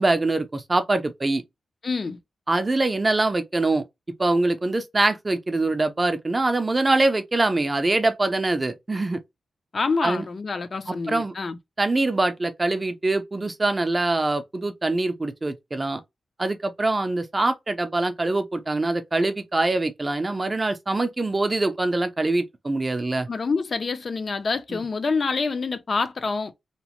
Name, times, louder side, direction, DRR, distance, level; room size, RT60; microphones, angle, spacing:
voice 1, 0.0-1.4 2.5-3.8 4.2-9.2 10.0-10.2 10.9-11.3 11.8-16.0 16.4-23.3 24.7-24.8, right 2 dB, 25° right, 0.4 m, -24 dB
voice 2, 1.8-2.2 9.7-11.6 23.3-26.5, left 4 dB, 50° left, 0.5 m, -26 dB
2.9 x 2.0 x 2.9 m
wide cardioid pair, 110°, 0 cm